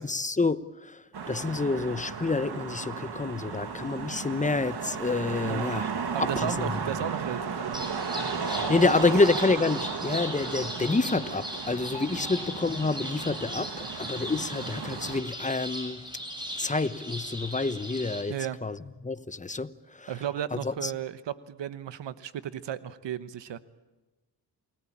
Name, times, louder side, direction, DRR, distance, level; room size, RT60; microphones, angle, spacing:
voice 1, 0.0-5.9 6.2-6.7 8.4-16.0 16.6-18.8 19.0-20.1 20.5-20.9, left 3 dB, 20° left, 1.0 m, -28 dB
sound 1, 1.1-15.2, right 5 dB, 65° right, 2.2 m, -35 dB
voice 2, 6.1-7.8 9.0-9.1 12.2-12.3 18.3-18.6 20.1-23.6, right 10 dB, 90° right, 1.1 m, -34 dB
sound 2, 7.7-18.2, equal, 10° right, 6.7 m, -38 dB
sound 3, 8.1-10.8 11.9-13.7, left 6 dB, 85° left, 1.6 m, -46 dB
28.5 x 18.5 x 8.7 m
cardioid pair, 75°, 42 cm